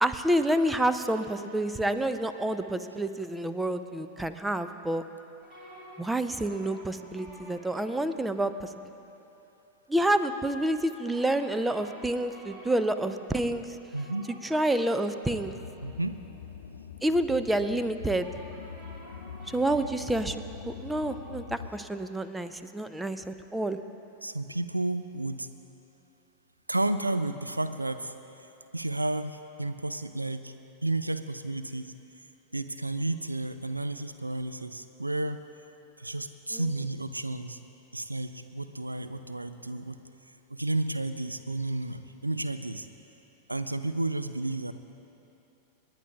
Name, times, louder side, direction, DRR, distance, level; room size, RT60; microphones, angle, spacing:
voice 1, 0.0-5.0 6.0-8.9 9.9-13.7 14.4-15.5 17.0-18.3 19.5-23.8 36.5-36.6, right 1 dB, 5° right, 10 dB, 0.5 m, -28 dB
sound 1, 5.4-8.8 11.1-16.9 18.2-21.8, equal, 30° right, 3.0 m, -51 dB
voice 2, 13.9-14.3 15.8-16.2 24.2-25.5 26.7-28.1 28.7-30.5 30.8-31.9 32.5-35.4 36.0-37.6 37.9-40.0 40.5-42.9 43.5-44.7, right 2 dB, 85° right, 10 dB, 0.4 m, -32 dB
sound 2, 15.3-21.7, left 6 dB, 65° left, 0.4 m, -44 dB
28.0 x 9.5 x 2.4 m, 3.0 s
figure-of-eight pair, 90°, 0 cm